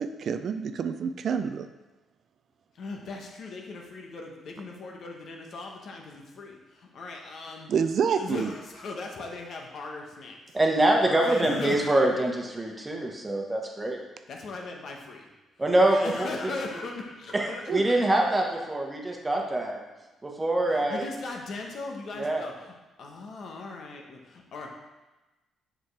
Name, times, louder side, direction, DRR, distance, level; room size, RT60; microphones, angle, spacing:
voice 1, 0.0-1.7 7.7-8.5 17.7-17.8, right 7 dB, 60° right, 9 dB, 0.4 m, -27 dB
voice 2, 2.7-7.7 8.1-11.9 14.3-15.3 15.8-18.1 20.7-24.7, left 3 dB, 60° left, 1 dB, 1.1 m, -39 dB
voice 3, 10.5-14.0 15.6-16.3 17.3-19.8 20.2-21.0 22.1-22.4, right 1 dB, 20° right, 0 dB, 1.2 m, -24 dB
7.1 x 5.1 x 3.3 m, 1.1 s
cardioid pair, 90°, 0 cm